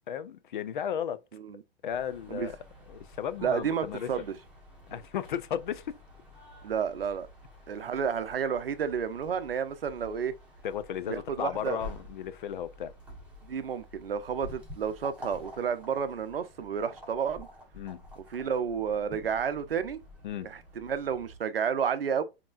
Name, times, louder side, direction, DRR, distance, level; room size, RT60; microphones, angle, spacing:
voice 1, 0.1-1.2 1.8-2.6 2.9-4.1 4.9-5.9 10.6-12.9 17.7-18.0 20.2-20.5, left 9 dB, 55° left, 0.5 m, -34 dB
sound 1, 1.9-21.4, left 1 dB, 5° right, 1.3 m, -50 dB
voice 2, 3.4-4.3 6.6-7.3 7.7-10.3 11.1-11.8 13.4-17.5 18.2-20.0 20.4-22.2, right 7 dB, 70° right, 0.6 m, -31 dB
5.2 x 3.0 x 2.3 m
figure-of-eight pair, 105°, 30 cm